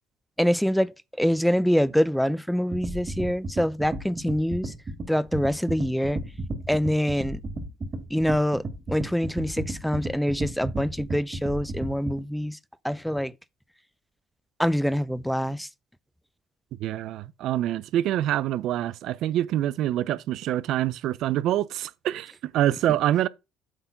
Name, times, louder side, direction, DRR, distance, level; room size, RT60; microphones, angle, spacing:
voice 1, 0.4-4.7 5.1-6.2 6.7-7.4 8.1-12.6 12.8-13.3 14.6-15.7, equal, ahead, 0.6 m, -25 dB
sound 1, 2.7-12.2, right 2 dB, 35° right, 2.8 m, -33 dB
voice 2, 16.8-23.3, right 13 dB, 70° right, 0.5 m, -26 dB
8.1 x 3.7 x 5.7 m
supercardioid pair, 70°, 0 cm